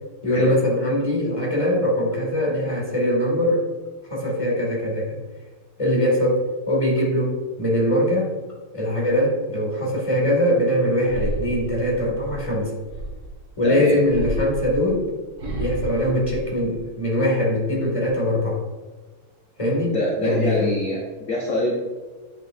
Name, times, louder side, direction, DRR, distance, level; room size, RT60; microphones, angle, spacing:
voice 1, 0.2-3.6 4.1-5.2 5.8-8.3 8.7-12.7 13.6-15.1 15.5-18.6 19.6-19.9 20.2-20.7, left 1 dB, 15° left, -3 dB, 1.9 m, -22 dB
sound 1, 11.0-13.4 14.0-17.1 17.5-18.1, right 1 dB, 40° right, 1.4 m, -32 dB
voice 2, 13.6-14.0 19.9-21.0 21.3-21.7, left 1 dB, 50° left, -2 dB, 1.1 m, -24 dB
8.6 x 6.4 x 2.5 m, 1.3 s
omnidirectional pair, 2.4 m